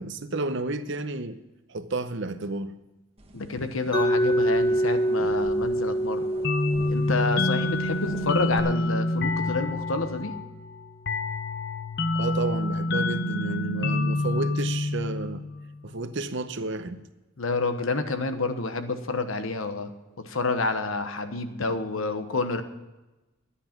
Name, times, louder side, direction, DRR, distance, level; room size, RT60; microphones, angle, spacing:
voice 1, 0.0-1.4 1.7-2.7 12.1-15.4 15.8-17.0, right 3 dB, 60° right, 0.8 m, -31 dB
sound 1, 3.2-8.6, right 1 dB, 30° right, 1.2 m, -45 dB
voice 2, 3.3-6.3 6.9-10.3 17.4-19.9 20.2-22.6, left 3 dB, 85° left, 1.1 m, -29 dB
Mallet percussion, 3.9-9.8, right 1 dB, 20° left, 1.0 m, -27 dB
sound 2, 6.4-15.8, left 2 dB, 55° left, 0.8 m, -27 dB
11.5 x 10.0 x 5.9 m
head